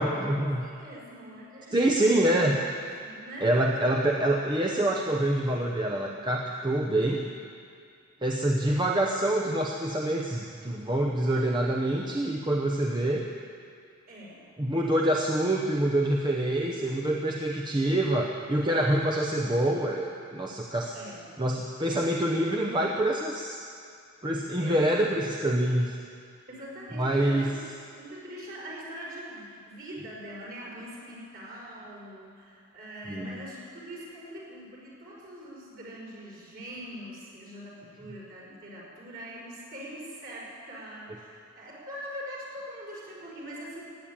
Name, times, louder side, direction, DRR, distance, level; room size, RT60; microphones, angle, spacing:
voice 1, 0.0-0.6 1.7-2.6 3.4-7.3 8.2-13.2 14.6-20.9 21.4-23.6 24.2-26.0 26.9-27.5 33.1-33.4, right 1 dB, 20° right, 0 dB, 0.9 m, -26 dB
voice 2, 0.6-2.2 3.0-3.5 4.0-4.1 14.1-14.4 20.9-21.3 24.2-24.9 26.5-27.6 27.9-43.8, equal, 45° right, -5 dB, 5.0 m, -43 dB
16.5 x 10.0 x 8.8 m, 2.3 s
head